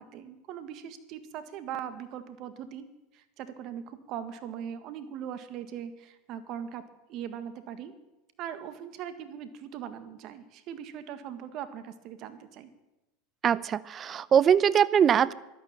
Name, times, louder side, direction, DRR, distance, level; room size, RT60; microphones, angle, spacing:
voice 1, 0.0-2.9 3.1-6.8 7.1-7.9 8.4-12.7, right 9 dB, 50° right, 12 dB, 1.8 m, -40 dB
voice 2, 13.4-15.3, right 8 dB, 35° right, 20 dB, 0.7 m, -22 dB
13.5 x 12.0 x 8.9 m, 1.0 s
hypercardioid pair, 95°, 0 cm